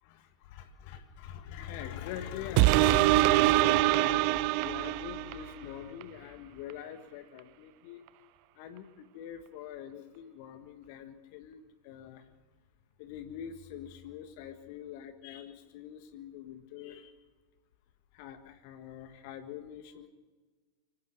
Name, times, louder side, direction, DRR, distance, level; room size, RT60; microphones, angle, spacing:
voice 1, 0.0-8.0 8.5-12.3 13.0-17.1 18.1-20.1, left 9 dB, 45° left, 9 dB, 1.6 m, -44 dB
sound 1, 2.6-5.5 6.0-6.1, right 17 dB, 45° right, 0.5 m, -24 dB
24.5 x 17.0 x 6.8 m, 1.3 s
figure-of-eight pair, 90°, 0 cm